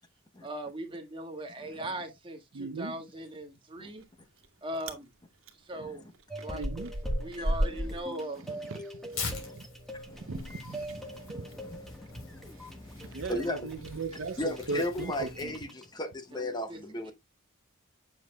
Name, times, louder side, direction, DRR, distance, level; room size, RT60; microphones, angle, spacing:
voice 1, 0.4-4.0 4.6-5.1 5.6-6.0 6.4-6.7 7.2-8.4 16.3-16.8 17.0-17.1, right 1 dB, 25° right, 1.6 m, -39 dB
voice 2, 2.5-3.0 5.8-5.9 6.5-6.9 8.7-8.8 9.5-11.0 11.3-11.5 13.0-15.5, right 4 dB, 65° right, 0.5 m, -38 dB
Chewing mastication, 4.0-4.5 4.7-5.0 5.4-9.2 9.5-14.9, right 1 dB, 90° right, 1.5 m, -37 dB
sound 1, 6.3-15.9, equal, ahead, 1.3 m, -44 dB
Tearing, 9.1-15.6, left 3 dB, 85° left, 3.6 m, -43 dB
voice 3, 9.2-9.5 10.1-10.3 11.1-13.7 14.4-17.1, left 1 dB, 20° left, 0.9 m, -36 dB
7.9 x 7.1 x 2.2 m
head